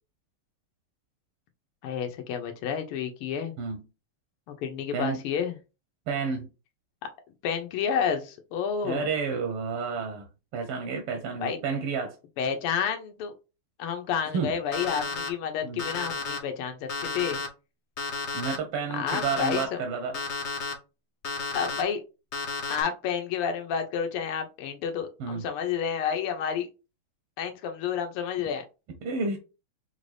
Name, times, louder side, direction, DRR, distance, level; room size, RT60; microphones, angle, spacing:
voice 1, 1.8-3.5 4.5-5.6 7.4-9.1 11.4-11.6 12.4-13.3 13.8-17.4 18.9-19.8 21.5-22.0 22.7-26.7 27.4-28.6, left 7 dB, 85° left, 1.7 m, -30 dB
voice 2, 6.1-6.5 8.8-10.2 10.5-12.1 14.3-14.5 15.6-15.8 18.3-20.2 25.2-25.5 29.0-29.4, right 5 dB, 80° right, 1.7 m, -30 dB
Alarm, 14.7-15.3 15.8-16.4 16.9-17.5 18.0-18.6 19.1-19.6 20.1-20.7 21.2-21.8 22.3-22.8, left 4 dB, 70° left, 0.6 m, -32 dB
5.7 x 2.6 x 3.2 m
omnidirectional pair, 2.4 m